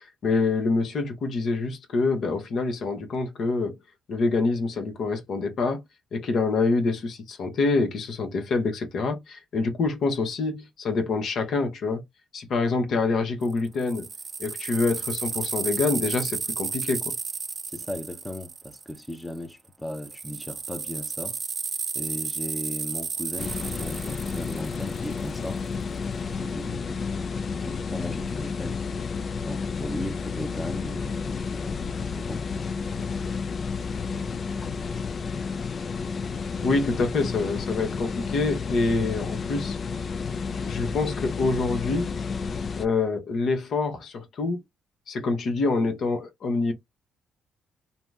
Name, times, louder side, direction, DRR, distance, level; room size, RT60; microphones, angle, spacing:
voice 1, 0.0-3.8 4.1-5.8 6.1-12.0 12.3-14.1 14.4-17.1 36.6-39.8 40.6-42.2 42.8-44.6 45.1-46.7, left 3 dB, 65° left, 0.8 m, -26 dB
sound 1, 13.4-19.4 19.9-25.3, right 5 dB, 40° right, 0.4 m, -33 dB
voice 2, 17.7-21.4 21.9-26.0 26.3-27.0 27.6-28.8 29.4-32.8 34.6-34.7, left 1 dB, 10° left, 0.6 m, -37 dB
sound 2, 23.4-42.9, left 5 dB, 45° left, 0.3 m, -31 dB
2.7 x 2.0 x 3.4 m
cardioid pair, 90°, 0 cm